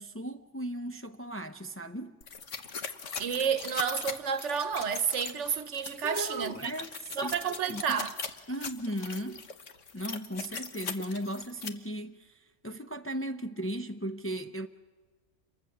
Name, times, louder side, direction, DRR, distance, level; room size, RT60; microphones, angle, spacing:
voice 1, 0.0-2.2 6.0-6.9 7.2-8.0 8.5-9.5 9.9-12.3 12.6-14.7, right 1 dB, 15° left, 0.5 m, -36 dB
sound 1, 2.2-11.7, left 5 dB, 85° left, 1.5 m, -40 dB
voice 2, 3.2-6.7 7.1-8.1, right 7 dB, 75° right, 1.3 m, -30 dB
29.0 x 23.5 x 6.6 m
omnidirectional pair, 1.2 m